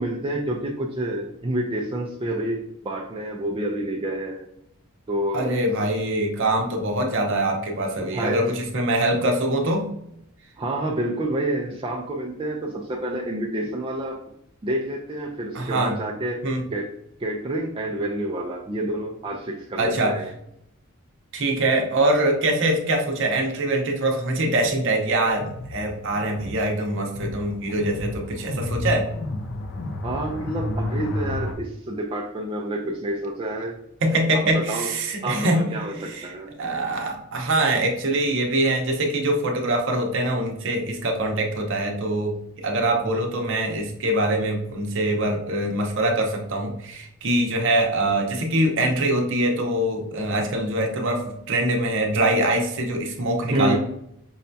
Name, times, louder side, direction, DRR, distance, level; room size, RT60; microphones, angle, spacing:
voice 1, 0.0-4.4 5.1-5.5 8.0-8.5 10.6-14.2 14.6-16.4 16.7-16.9 17.2-20.3 30.0-33.8 34.3-34.9 35.2-36.5 53.5-53.8, right 1 dB, 25° right, -1 dB, 0.4 m, -28 dB
voice 2, 5.3-9.9 15.5-15.9 16.4-16.6 19.8-20.2 21.3-29.1 34.0-35.7 36.0-36.3 36.6-53.8, right 1 dB, 60° right, 2 dB, 0.7 m, -23 dB
sound 1, 25.4-31.5, left 2 dB, 55° left, 0.5 m, -31 dB
5.4 x 2.2 x 2.6 m, 0.75 s
head